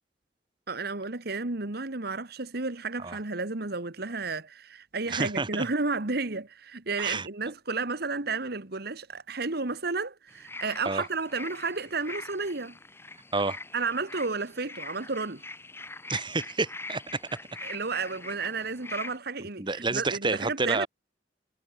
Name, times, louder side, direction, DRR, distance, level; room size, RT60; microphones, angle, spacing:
voice 1, 0.7-12.8 13.7-15.4 17.6-20.9, right 4 dB, 60° right, 1.6 m, -32 dB
voice 2, 5.1-5.7 7.0-7.3 10.8-11.0 13.3-13.6 16.1-17.2 19.6-20.9, right 3 dB, 25° right, 1.7 m, -29 dB
sound 1, 10.3-19.2, left 2 dB, 15° left, 3.4 m, -43 dB
head